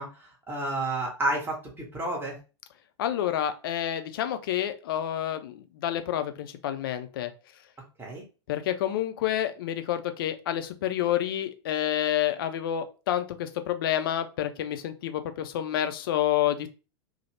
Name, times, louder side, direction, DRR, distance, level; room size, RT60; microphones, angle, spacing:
voice 1, 0.0-2.4 8.0-8.2, right 2 dB, 15° right, 0 dB, 1.1 m, -31 dB
voice 2, 3.0-7.3 8.5-16.7, left 11 dB, 55° left, 9 dB, 0.4 m, -29 dB
2.9 x 2.0 x 3.1 m, 0.32 s
figure-of-eight pair, 90°, 15 cm